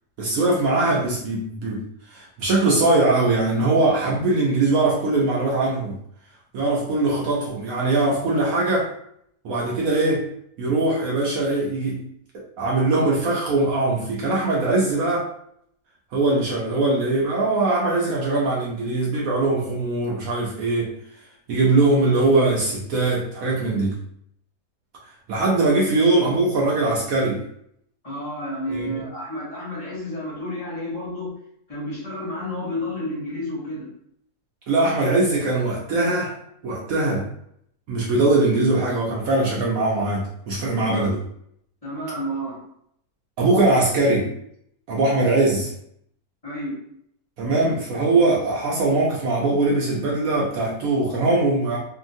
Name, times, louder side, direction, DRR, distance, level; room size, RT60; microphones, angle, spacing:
voice 1, 0.2-1.8 2.1-6.0 6.5-8.9 9.4-10.3 10.6-12.0 12.6-15.3 16.1-20.9 21.5-24.0 25.3-27.4 28.7-28.9 34.7-36.4 36.6-37.3 37.9-41.2 43.4-44.3 44.9-45.7 47.4-51.8, right 2 dB, 65° right, -4 dB, 1.0 m, -21 dB
voice 2, 28.0-31.4 31.7-33.9 40.7-41.0 41.8-42.7 46.4-46.8, left 1 dB, 25° left, -9 dB, 1.1 m, -31 dB
2.7 x 2.7 x 2.5 m, 0.70 s
omnidirectional pair, 1.7 m